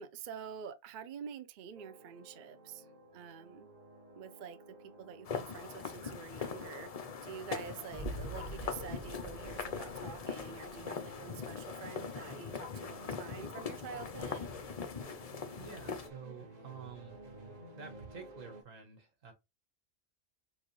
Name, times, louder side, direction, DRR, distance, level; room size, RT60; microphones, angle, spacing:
voice 1, 0.0-3.7 4.1-4.6 5.0-14.5, right 7 dB, 55° right, 0.5 m, -47 dB
sound 1, 1.7-18.6, right 1 dB, 35° right, 1.0 m, -54 dB
sound 2, 5.2-16.1, left 6 dB, 50° left, 0.4 m, -41 dB
sound 3, 7.9-10.9, right 2 dB, 10° right, 1.0 m, -45 dB
voice 2, 15.5-17.2 17.8-19.3, right 6 dB, 75° right, 1.7 m, -49 dB
6.3 x 2.5 x 3.1 m
omnidirectional pair, 1.4 m